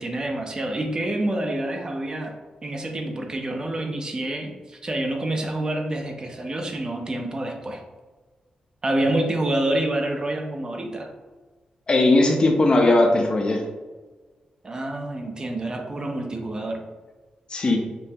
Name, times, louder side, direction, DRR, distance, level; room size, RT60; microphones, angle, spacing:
voice 1, 0.0-7.8 8.8-11.1 14.6-16.8, right 1 dB, 30° right, 3 dB, 0.5 m, -27 dB
voice 2, 11.9-13.6 17.5-17.8, left 2 dB, 40° left, 2 dB, 0.5 m, -18 dB
5.3 x 2.1 x 2.7 m, 1.3 s
wide cardioid pair, 105°, 3 cm